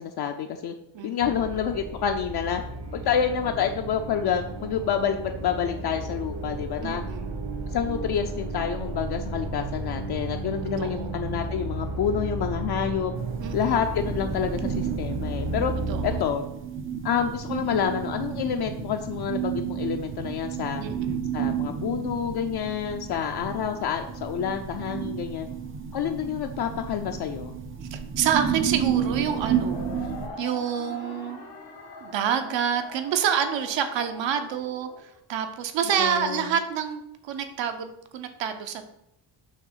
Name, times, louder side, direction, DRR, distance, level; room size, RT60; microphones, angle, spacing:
voice 1, 0.0-0.7 1.0-2.6 2.9-7.0 7.7-13.1 13.5-15.7 16.0-16.5 17.0-20.8 21.3-25.5 25.9-27.6 36.0-36.5, left 8 dB, 60° left, 4 dB, 0.5 m, -28 dB
voice 2, 0.9-1.4 6.8-7.4 10.8-11.1 13.4-13.8 15.9-16.2 20.8-21.2 27.9-29.8 30.4-31.4 32.0-34.9 35.3-38.9, right 8 dB, 80° right, 8 dB, 0.8 m, -28 dB
sound 1, 1.2-16.2, right 2 dB, 60° right, 1.2 m, -33 dB
sound 2, 13.2-30.3, right 8 dB, 30° right, 0.5 m, -32 dB
sound 3, 28.5-35.0, left 2 dB, 90° left, 2.3 m, -42 dB
6.4 x 3.0 x 5.6 m, 0.79 s
cardioid pair, 145°, 44 cm